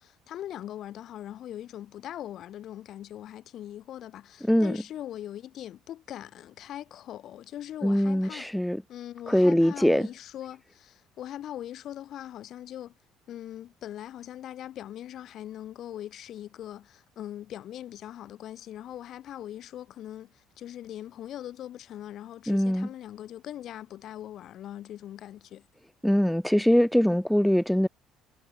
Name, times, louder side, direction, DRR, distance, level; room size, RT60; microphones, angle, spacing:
voice 1, 0.0-8.5 8.9-12.9 13.3-25.7, left 11 dB, 60° left, 5.4 m, -41 dB
voice 2, 4.5-4.8 7.8-8.8 9.3-10.1 22.5-22.9 26.0-27.9, equal, 5° left, 1.9 m, -22 dB
hypercardioid pair, 60°, 0 cm